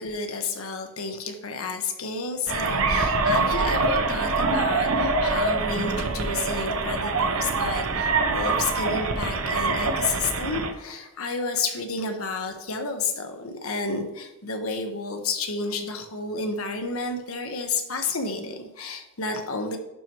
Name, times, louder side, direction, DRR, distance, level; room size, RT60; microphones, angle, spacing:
voice 1, 0.0-19.8, left 4 dB, 85° left, 5 dB, 1.2 m, -31 dB
sound 1, 2.5-10.7, right 3 dB, 75° right, 0.9 m, -24 dB
11.0 x 4.5 x 3.1 m, 1.0 s
head